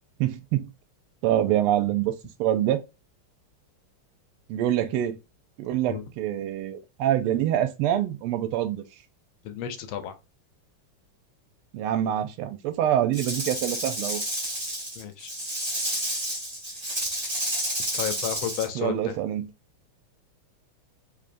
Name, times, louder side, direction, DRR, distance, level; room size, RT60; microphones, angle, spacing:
voice 1, 0.2-0.7 1.2-2.8 4.5-5.2 5.6-8.8 11.7-14.2 18.7-19.5, right 11 dB, 85° right, 1.5 m, -25 dB
voice 2, 9.4-10.1 15.0-15.3 17.9-19.2, left 10 dB, 75° left, 1.3 m, -32 dB
Rattle / Rattle (instrument), 13.1-18.7, right 1 dB, 20° right, 0.7 m, -30 dB
3.8 x 3.2 x 2.5 m
omnidirectional pair, 2.4 m